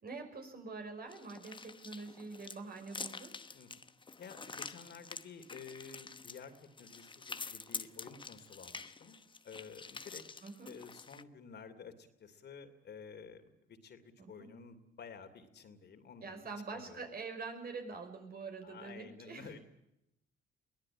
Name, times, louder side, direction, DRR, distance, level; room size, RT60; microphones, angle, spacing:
voice 1, 0.0-3.3 10.4-10.8 14.2-14.5 16.2-19.5, right 4 dB, 50° right, 5 dB, 5.7 m, -45 dB
sound 1, 1.1-11.2, left 4 dB, 25° left, 1.0 m, -47 dB
voice 2, 4.2-6.5 6.8-9.2 9.4-10.2 10.7-13.4 13.7-16.4 16.7-17.0 18.6-19.6, left 6 dB, 60° left, 7 dB, 2.9 m, -51 dB
22.5 x 17.5 x 8.8 m, 0.85 s
cardioid pair, 90°, 20 cm